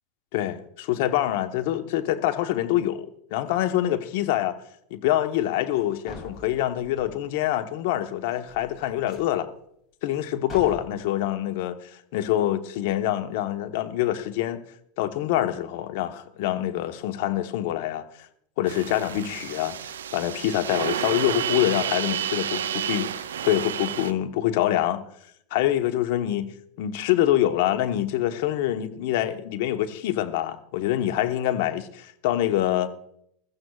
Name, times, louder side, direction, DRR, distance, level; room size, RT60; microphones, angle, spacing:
voice 1, 0.3-4.6 4.9-9.5 10.0-14.6 15.0-18.0 18.6-25.0 25.5-26.5 26.8-32.9, left 13 dB, 65° left, 1.1 m, -25 dB
sound 1, 5.8-5.9 6.1-7.3 8.3-9.4 10.1-10.2 10.5-10.8, left 3 dB, 35° left, 4.2 m, -43 dB
sound 2, 18.6-24.1, right 10 dB, 80° right, 0.6 m, -30 dB
21.5 x 14.5 x 2.4 m
hypercardioid pair, 90°, 0 cm